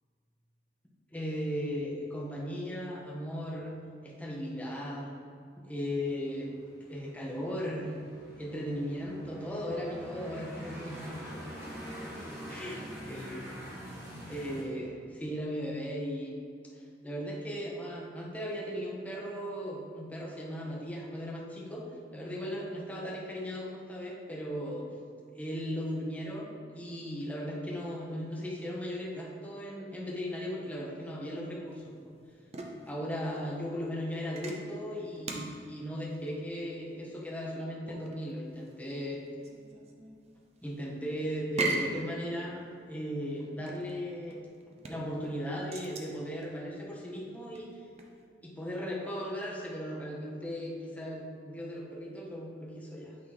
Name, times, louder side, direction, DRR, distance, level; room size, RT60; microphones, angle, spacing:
voice 1, 1.1-5.1 5.6-6.5 6.8-7.9 8.4-11.5 12.5-16.3 16.7-24.9 25.3-31.9 32.9-39.2 40.6-44.4 44.9-47.7 48.4-53.2, equal, 10° left, -4 dB, 1.0 m, -37 dB
sound 1, 6.3-14.6, equal, 15° right, 1.3 m, -45 dB
sound 2, 31.7-48.2, right 2 dB, 35° right, 0.6 m, -41 dB
8.7 x 3.0 x 4.1 m, 2.4 s
head